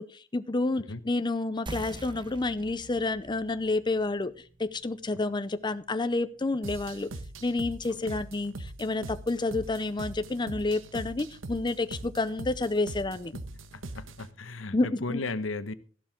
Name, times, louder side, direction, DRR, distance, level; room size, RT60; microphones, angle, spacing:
voice 1, 0.0-4.3 4.6-7.1 7.4-13.3 14.7-15.2, left 2 dB, 25° left, 12 dB, 0.6 m, -29 dB
sound 1, 1.7-6.8, right 2 dB, 25° right, 0.9 m, -46 dB
sound 2, 6.6-14.3, right 2 dB, 75° right, 1.3 m, -42 dB
voice 2, 13.7-15.7, left 3 dB, 75° left, 13 dB, 1.1 m, -35 dB
14.0 x 12.0 x 3.7 m, 0.38 s
head